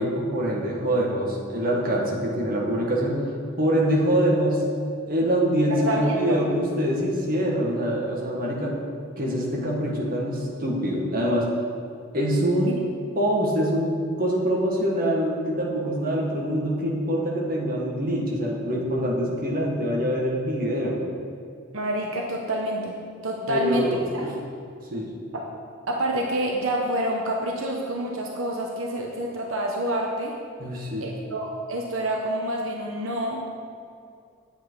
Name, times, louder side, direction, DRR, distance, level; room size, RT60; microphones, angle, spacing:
voice 1, 0.0-3.2 3.6-4.6 5.1-8.7 9.2-11.5 12.1-12.7 13.1-21.0 23.5-24.3 24.9-25.1 30.6-31.1, equal, 45° right, -3 dB, 1.6 m, -24 dB
voice 2, 5.8-6.4 12.6-12.7 21.7-23.0 23.2-24.3 25.3-25.5 25.9-30.3 31.0-33.4, right 1 dB, 80° right, 0 dB, 1.0 m, -27 dB
9.0 x 7.9 x 4.7 m, 2.5 s
head